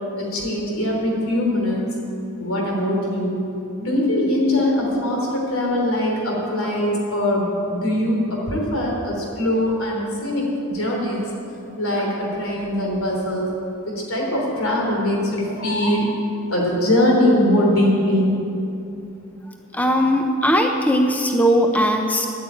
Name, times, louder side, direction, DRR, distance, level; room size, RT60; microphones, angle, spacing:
voice 1, 0.2-1.9 2.4-3.4 3.8-11.3 11.8-13.5 13.8-16.1 16.5-18.3, left 1 dB, 85° left, -1 dB, 3.4 m, -21 dB
voice 2, 19.7-22.3, equal, 5° left, 3 dB, 0.6 m, -19 dB
10.5 x 8.8 x 8.9 m, 2.7 s
head